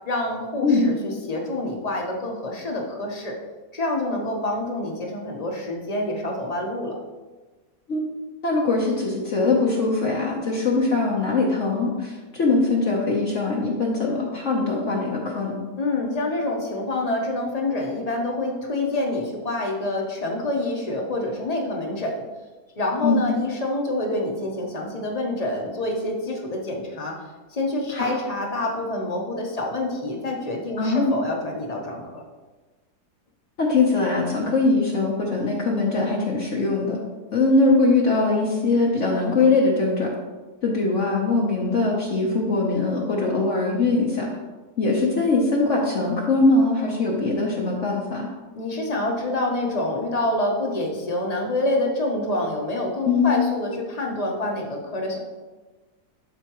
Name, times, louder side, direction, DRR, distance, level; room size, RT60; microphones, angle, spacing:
voice 1, 0.0-3.3 3.7-7.0 15.8-22.2 22.8-27.1 27.5-32.2 48.6-55.2, left 1 dB, 25° left, 0 dB, 1.0 m, -27 dB
voice 2, 0.6-0.9 7.9-8.0 8.4-15.6 23.0-23.3 27.9-28.1 30.8-31.2 33.6-37.0 37.3-40.1 40.6-44.3 44.8-48.3 53.1-53.4, left 3 dB, 50° left, -3 dB, 1.2 m, -21 dB
12.0 x 4.4 x 3.0 m, 1.2 s
omnidirectional pair, 1.7 m